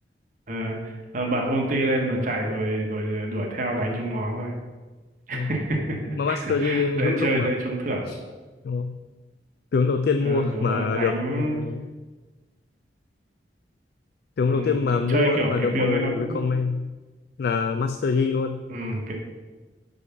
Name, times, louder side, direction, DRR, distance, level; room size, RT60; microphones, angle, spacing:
voice 1, 0.5-4.5 5.3-8.1 10.2-11.6 14.5-14.8 15.1-16.4 18.7-19.1, right 1 dB, 45° right, 1 dB, 1.1 m, -27 dB
voice 2, 6.2-7.5 8.1-8.2 8.6-8.9 9.7-11.9 14.4-16.8 17.4-18.9, left 4 dB, 60° left, 7 dB, 0.3 m, -25 dB
5.4 x 4.8 x 5.7 m, 1.3 s
head